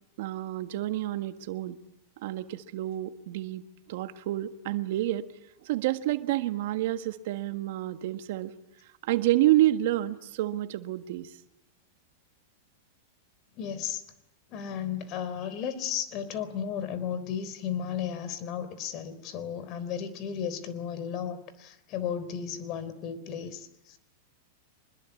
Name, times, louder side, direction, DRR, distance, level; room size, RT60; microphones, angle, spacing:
voice 1, 0.2-1.8 2.2-5.3 5.6-8.5 9.0-11.3, right 15 dB, 65° right, 1.6 m, -29 dB
voice 2, 13.5-14.0 14.5-24.0, left 8 dB, 45° left, 3.9 m, -34 dB
25.0 x 21.0 x 8.5 m
hypercardioid pair, 130°, 0 cm